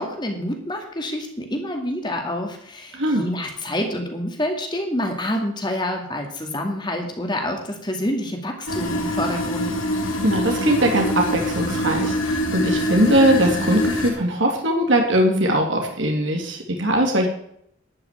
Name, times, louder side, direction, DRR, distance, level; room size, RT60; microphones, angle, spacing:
voice 1, 0.0-9.7, left 1 dB, 20° left, 3 dB, 2.3 m, -27 dB
voice 2, 2.9-3.2 10.2-17.3, right 1 dB, 65° right, 2 dB, 2.3 m, -20 dB
sound 1, 8.7-14.1, equal, 80° left, 2.7 m, -24 dB
12.0 x 6.1 x 9.3 m, 0.70 s
head